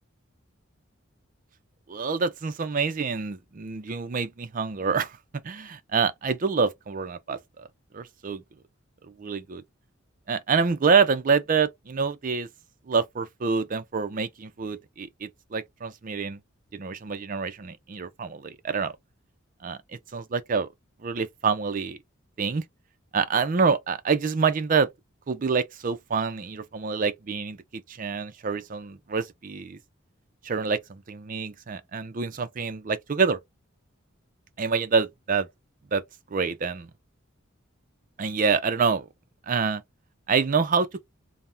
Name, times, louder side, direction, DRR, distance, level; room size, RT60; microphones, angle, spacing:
voice 1, 1.9-5.2 5.4-7.7 7.9-8.4 9.1-9.6 10.3-12.5 12.9-16.4 16.7-19.0 19.6-19.8 20.1-20.7 21.0-22.0 22.4-22.6 23.1-24.9 25.3-29.8 30.4-33.4 34.6-35.5 35.9-36.0 36.3-36.9 38.2-39.1 39.5-39.8 40.3-40.9, right 5 dB, 40° right, 0.4 m, -26 dB
3.4 x 2.1 x 2.6 m
head